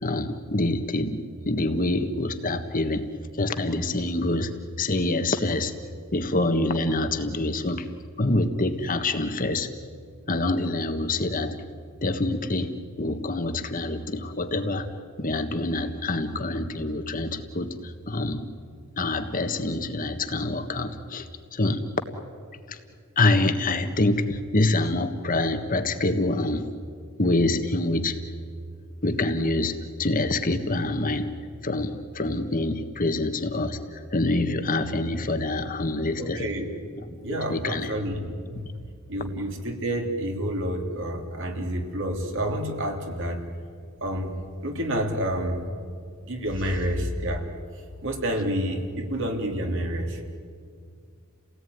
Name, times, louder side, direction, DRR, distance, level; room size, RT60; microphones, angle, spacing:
voice 1, 0.0-3.1 3.4-5.7 6.1-7.9 8.2-9.7 10.3-11.6 12.0-14.9 15.2-18.5 19.0-21.9 22.7-22.8 23.1-26.7 27.2-28.2 29.0-31.3 31.6-36.5 37.0-37.9, left 2 dB, 40° left, 8 dB, 1.5 m, -26 dB
voice 2, 36.2-36.7 37.2-38.7 39.1-43.4 44.0-45.7 46.2-47.4 48.0-50.2, right 1 dB, 60° right, 3 dB, 2.9 m, -29 dB
30.0 x 18.0 x 9.5 m, 2.2 s
head